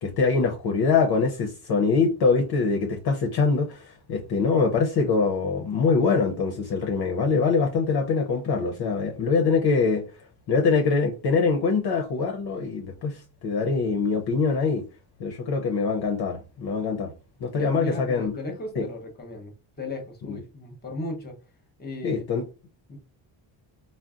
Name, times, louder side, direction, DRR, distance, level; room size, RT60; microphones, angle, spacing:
voice 1, 0.0-10.0 10.5-14.8 15.2-17.1 17.4-18.3 18.8-18.9 20.3-20.4 22.0-22.4, left 4 dB, 50° left, 0.6 m, -24 dB
voice 2, 17.5-19.5 19.8-21.4 21.8-22.2 22.9-23.0, left 1 dB, 20° left, 0.8 m, -36 dB
3.8 x 2.1 x 2.4 m
cardioid pair, 130°, 49 cm